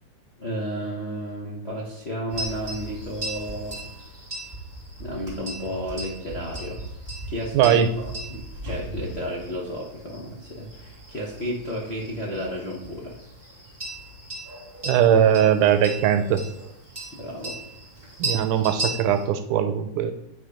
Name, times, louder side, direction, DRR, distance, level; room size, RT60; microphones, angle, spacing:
voice 1, 0.4-3.8 5.0-6.8 7.3-13.2 17.1-17.6, equal, 70° left, -3 dB, 0.6 m, -32 dB
sound 1, 2.3-19.2, right 2 dB, 20° right, 2.7 m, -37 dB
voice 2, 7.5-7.9 14.8-16.4 18.2-20.1, right 9 dB, 90° right, 9 dB, 2.2 m, -20 dB
9.3 x 4.5 x 5.0 m, 0.84 s
omnidirectional pair, 3.5 m